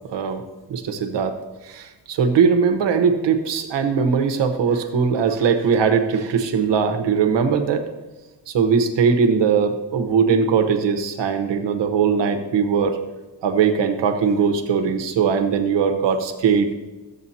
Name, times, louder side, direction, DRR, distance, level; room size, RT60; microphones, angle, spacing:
voice 1, 0.7-1.4 1.7-7.8 8.5-13.0 13.4-16.7, right 6 dB, 75° right, 7 dB, 1.1 m, -20 dB
13.5 x 8.2 x 2.8 m, 1.1 s
cardioid pair, 140°, 44 cm